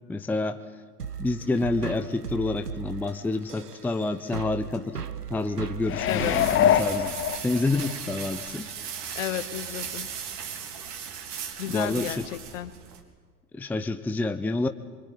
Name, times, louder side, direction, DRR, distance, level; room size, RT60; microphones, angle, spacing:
voice 1, 0.1-0.6 1.2-5.0 5.3-7.1 7.4-8.7 11.7-12.3 13.5-14.7, left 2 dB, 5° left, 9 dB, 0.7 m, -28 dB
sound 1, 1.0-7.6, right 7 dB, 85° right, 1.0 m, -38 dB
sound 2, 5.2-13.0, right 7 dB, 35° right, 3.5 m, -38 dB
sound 3, 5.9-7.9 8.4-8.5, left 10 dB, 25° left, 1.2 m, -24 dB
voice 2, 6.1-6.4 9.2-10.1 11.6-12.7, left 12 dB, 55° left, 12 dB, 1.7 m, -32 dB
24.0 x 23.5 x 9.4 m, 1.5 s
figure-of-eight pair, 95°, 46 cm